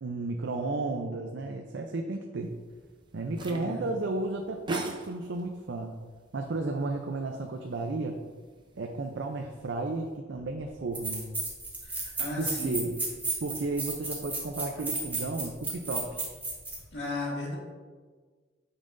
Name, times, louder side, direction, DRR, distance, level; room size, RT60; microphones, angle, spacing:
voice 1, 0.0-2.6 3.1-6.0 6.3-8.2 8.8-11.3 12.4-13.0 13.4-16.2, right 2 dB, 65° right, 3 dB, 0.5 m, -33 dB
sound 1, 2.4-10.2, right 2 dB, 25° right, 0.6 m, -46 dB
voice 2, 3.4-3.8 11.8-12.7 16.9-17.6, left 2 dB, 65° left, -3 dB, 1.8 m, -36 dB
sound 2, 10.4-10.5 10.9-16.8, right 2 dB, 10° right, 1.4 m, -33 dB
8.7 x 5.5 x 2.6 m, 1.5 s
head